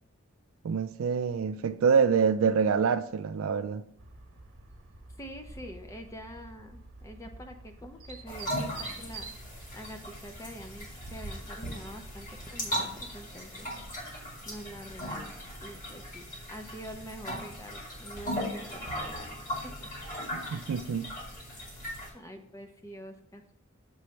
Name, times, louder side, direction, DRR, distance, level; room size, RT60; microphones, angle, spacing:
voice 1, 0.6-3.9 20.5-21.1, right 6 dB, 85° right, 0.4 m, -26 dB
sound 1, 4.0-13.3, right 3 dB, 65° right, 1.0 m, -48 dB
voice 2, 5.2-9.3 9.7-13.7 14.4-15.3 15.6-19.4 19.8-19.9 20.2-20.6 22.1-23.4, equal, 15° left, 0.6 m, -46 dB
sound 2, 8.3-22.1, equal, 40° left, 1.8 m, -38 dB
6.9 x 3.1 x 5.6 m
head